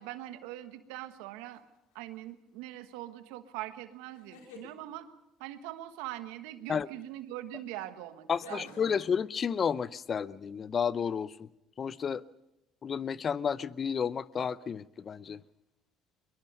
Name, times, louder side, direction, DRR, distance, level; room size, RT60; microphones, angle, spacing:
voice 1, 0.0-1.6 1.9-5.1 5.4-9.0, right 14 dB, 80° right, 1.3 m, -42 dB
sound 1, 1.5-2.0 4.1-4.7 7.0-7.1 8.4-9.0, left 4 dB, 85° left, 3.1 m, -49 dB
voice 2, 8.3-11.5 11.8-12.2 12.8-15.4, left 7 dB, 40° left, 0.7 m, -31 dB
23.0 x 22.5 x 5.5 m
hypercardioid pair, 70°, 0 cm